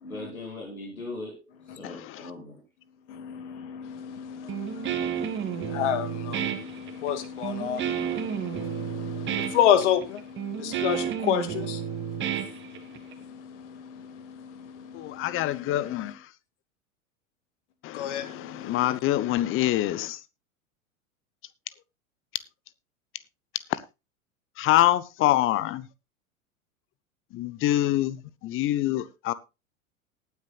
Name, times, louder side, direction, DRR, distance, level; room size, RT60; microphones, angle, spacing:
voice 1, 0.0-2.6, left 2 dB, 85° left, 2.9 m, -39 dB
voice 2, 1.8-2.3 14.9-16.3 17.8-20.2 23.7-23.8 24.6-25.9 27.3-29.3, left 14 dB, 30° left, 0.9 m, -26 dB
voice 3, 3.1-16.1 17.9-19.0, left 10 dB, 55° left, 2.1 m, -31 dB
Guitar, 4.5-13.1, right 9 dB, 25° right, 1.8 m, -31 dB
19.0 x 9.5 x 2.4 m
figure-of-eight pair, 85°, 41 cm